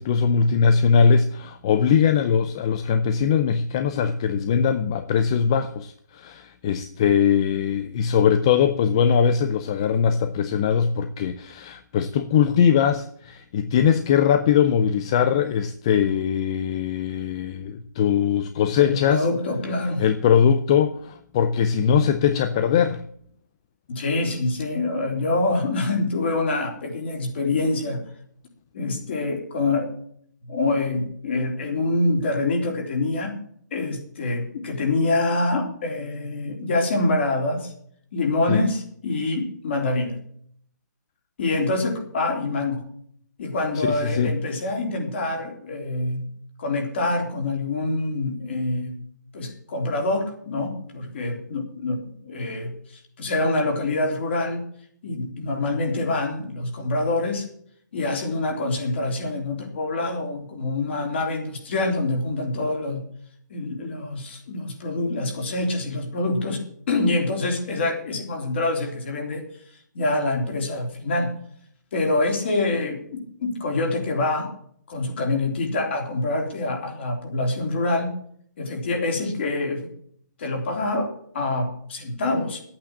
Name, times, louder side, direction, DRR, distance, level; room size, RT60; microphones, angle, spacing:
voice 1, 0.0-19.2 20.0-23.0 38.5-38.7 43.8-44.3, left 7 dB, 15° left, 10 dB, 0.4 m, -21 dB
voice 2, 18.8-20.0 23.9-28.0 28.7-29.9 30.4-33.4 33.7-37.7 38.1-40.2 41.4-42.8 43.4-46.2 46.6-49.0 49.3-54.6 55.0-57.5 57.9-63.0 63.5-69.5 69.9-71.3 71.9-74.5 74.9-78.1 78.6-79.9 80.4-82.6, left 2 dB, 35° left, 2 dB, 3.4 m, -25 dB
12.5 x 8.7 x 7.2 m, 0.63 s
hypercardioid pair, 175°, 10 cm